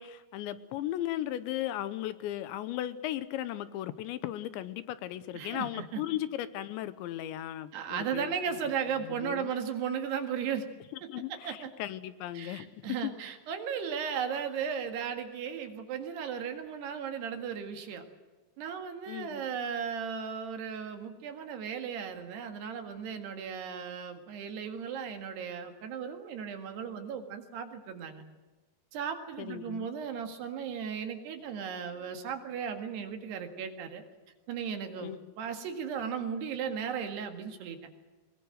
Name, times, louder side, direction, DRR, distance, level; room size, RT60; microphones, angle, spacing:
voice 1, 0.0-8.6 9.0-9.5 11.1-13.1 19.1-19.4 29.4-29.9 35.0-35.3, left 13 dB, 80° left, 14 dB, 3.0 m, -36 dB
voice 2, 5.4-6.0 7.7-10.7 11.3-11.7 12.4-18.1 18.6-28.2 28.9-34.0 34.5-37.8, right 7 dB, 65° right, 6 dB, 3.7 m, -36 dB
22.0 x 21.5 x 7.8 m, 1.2 s
omnidirectional pair, 5.4 m